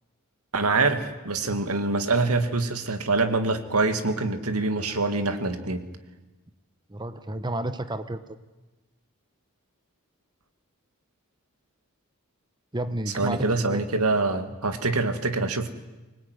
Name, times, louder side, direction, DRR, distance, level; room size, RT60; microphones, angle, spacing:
voice 1, 0.5-5.8 13.2-15.7, right 3 dB, 90° right, 7 dB, 2.2 m, -25 dB
voice 2, 6.9-8.2 12.7-13.8, right 1 dB, 20° right, 11 dB, 0.9 m, -31 dB
24.5 x 19.5 x 9.5 m, 1.1 s
head